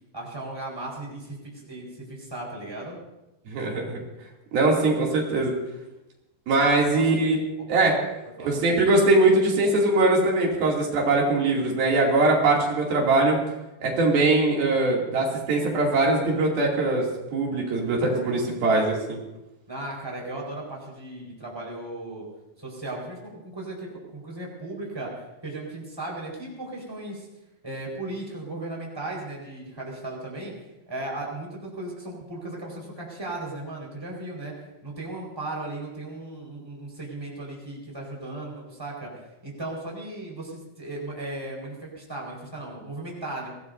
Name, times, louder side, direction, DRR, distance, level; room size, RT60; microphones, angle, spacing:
voice 1, 0.1-3.0 6.9-7.2 7.6-7.8 8.4-8.5 19.7-22.3 22.6-27.3 27.6-30.5 30.9-34.5 34.8-43.5, right 2 dB, 5° right, -3 dB, 4.5 m, -36 dB
voice 2, 3.5-4.0 4.5-5.5 6.5-7.4 7.7-8.0 8.4-13.4 13.8-17.0 17.3-19.2, right 2 dB, 90° right, -2 dB, 4.6 m, -21 dB
23.5 x 18.0 x 2.7 m, 0.98 s
omnidirectional pair, 4.1 m